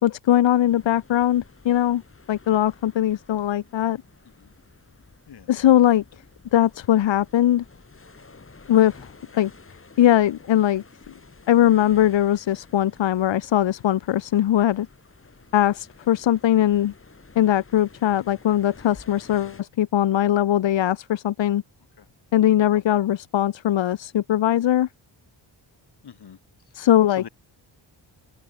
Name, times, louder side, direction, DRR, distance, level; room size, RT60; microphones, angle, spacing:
voice 1, 0.0-2.0 2.3-4.0 5.5-6.0 6.5-7.6 8.7-9.1 9.4-9.5 10.0-10.8 11.5-14.9 15.5-16.9 17.3-21.6 22.3-24.9 26.7-27.2, left 12 dB, 80° left, 1.1 m, -20 dB
sound 1, 0.7-19.6, left 4 dB, 30° left, 8.0 m, -50 dB
voice 2, 26.0-26.4 27.1-27.3, left 8 dB, 60° left, 3.4 m, -43 dB
open air
wide cardioid pair, 135°, 44 cm